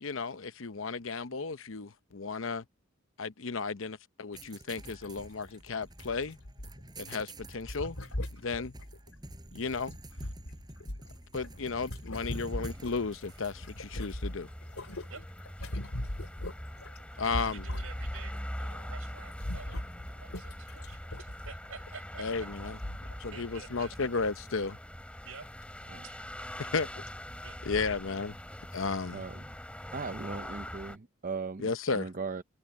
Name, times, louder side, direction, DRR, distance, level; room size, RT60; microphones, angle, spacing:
voice 1, 0.0-2.6 3.2-6.4 7.0-8.0 8.4-8.7 9.5-10.0 11.3-14.5 17.2-17.6 22.2-22.8 23.2-24.8 26.7-26.9 27.7-28.3 28.7-29.2 31.6-32.1, left 4 dB, 70° left, 0.8 m, -34 dB
sound 1, 4.3-14.1, right 1 dB, 20° right, 6.3 m, -48 dB
sound 2, 5.0-5.2 5.5-5.6 6.1-7.0 7.6-9.4 9.9-13.3 13.6-18.4 18.7-18.9 19.2-21.9 22.5-22.6 22.8-23.3 23.7-23.8, left 1 dB, 85° left, 3.0 m, -40 dB
sound 3, 12.1-31.0, equal, 5° left, 7.1 m, -43 dB
voice 2, 17.3-19.8 20.2-22.5 23.3-24.0 25.3-25.5 26.0-26.7 27.4-27.8, right 5 dB, 80° right, 5.2 m, -50 dB
voice 3, 29.9-32.4, right 4 dB, 40° right, 0.6 m, -38 dB
head